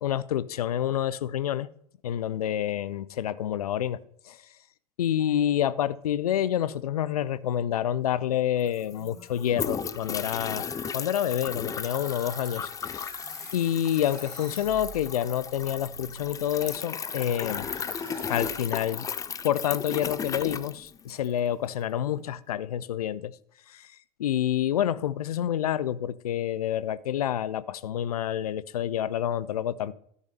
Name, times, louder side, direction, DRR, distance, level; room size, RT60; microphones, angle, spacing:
voice 1, 0.0-1.7 2.0-4.0 4.3-4.4 5.0-13.1 13.5-17.7 18.3-19.1 19.4-23.3 23.7-23.9 24.2-29.9, left 10 dB, 65° left, 0.6 m, -28 dB
sound 1, 8.3-8.4 8.6-21.4, left 6 dB, 15° left, 0.5 m, -35 dB
sound 2, 8.8-18.8, right 4 dB, 70° right, 2.2 m, -49 dB
13.5 x 6.4 x 5.3 m
figure-of-eight pair, 80°, 20 cm